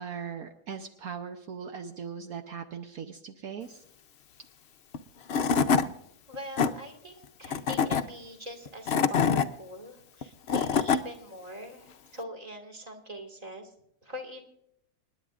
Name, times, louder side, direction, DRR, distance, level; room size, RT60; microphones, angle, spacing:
voice 1, 0.0-3.8, right 7 dB, 70° right, 5 dB, 1.3 m, -39 dB
Tools / Wood, 4.9-5.0 5.3-5.9 6.3-6.7 7.4-8.0 8.7-9.5 10.2-11.0, left 6 dB, 55° left, 0.7 m, -24 dB
voice 2, 6.3-13.7 14.0-14.4, left 1 dB, 25° right, 3 dB, 2.0 m, -43 dB
28.0 x 10.5 x 2.5 m, 0.76 s
omnidirectional pair, 1.7 m